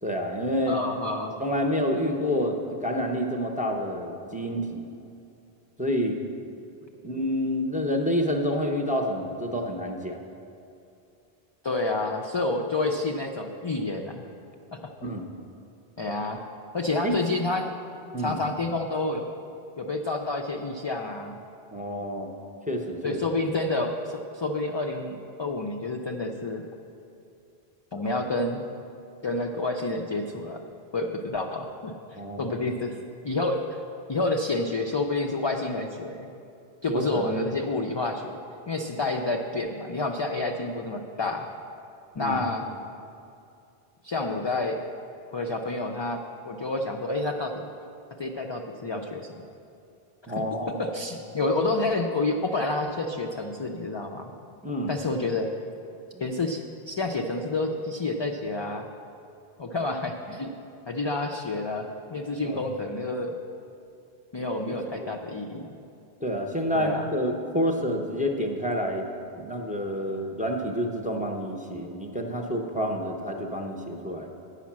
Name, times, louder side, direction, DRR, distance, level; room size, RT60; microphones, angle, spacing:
voice 1, 0.0-0.8 1.4-4.8 5.8-6.2 7.0-10.2 15.0-15.3 17.0-17.2 18.1-18.4 21.7-22.3 22.7-23.2 32.2-32.5 36.9-37.3 42.2-42.4 50.3-50.9 54.6-54.9 62.5-62.6 65.0-65.1 66.2-69.1 69.4-74.3, equal, 10° right, 2 dB, 0.6 m, -28 dB
voice 2, 0.7-1.3 11.6-14.3 14.7-14.8 16.0-16.4 16.7-17.7 18.2-19.3 19.8-21.4 23.0-26.6 27.9-28.6 29.2-30.6 30.9-33.0 33.2-33.8 34.1-36.3 36.8-38.4 38.7-41.5 42.1-42.7 44.0-44.8 45.3-46.2 46.5-47.7 48.2-49.3 50.8-54.3 54.9-55.6 56.2-58.9 59.6-60.5 60.9-63.3 64.3-65.7 66.7-67.1, left 2 dB, 40° left, 2 dB, 0.4 m, -29 dB
9.4 x 5.8 x 7.3 m, 2.7 s
omnidirectional pair, 1.0 m